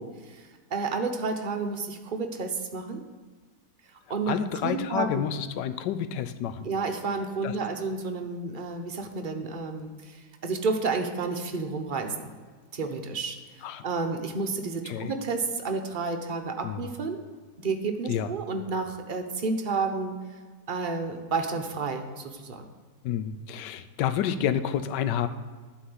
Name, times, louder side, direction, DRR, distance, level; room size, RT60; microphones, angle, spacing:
voice 1, 0.0-3.0 4.1-4.4 4.6-5.3 6.6-12.3 12.7-17.2 17.6-20.1 20.7-22.7, right 4 dB, 40° right, 4 dB, 0.7 m, -31 dB
voice 2, 4.3-6.7 7.4-7.5 13.6-13.8 14.9-15.1 16.6-16.8 18.1-18.3 23.0-25.3, left 9 dB, 90° left, 11 dB, 1.3 m, -29 dB
11.5 x 4.2 x 7.8 m, 1.5 s
omnidirectional pair, 1.8 m